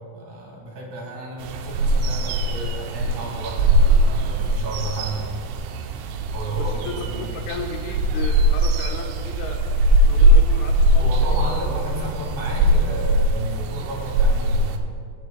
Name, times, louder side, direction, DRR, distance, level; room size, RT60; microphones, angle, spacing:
voice 1, 0.1-5.2 6.3-7.2 11.0-14.8, right 2 dB, 50° right, -3 dB, 2.8 m, -32 dB
sound 1, 1.4-14.8, right 1 dB, 90° right, 3.2 m, -20 dB
voice 2, 6.5-9.6 10.1-12.1, left 6 dB, 80° left, 1 dB, 3.2 m, -35 dB
20.5 x 9.2 x 2.2 m, 2.2 s
omnidirectional pair, 5.6 m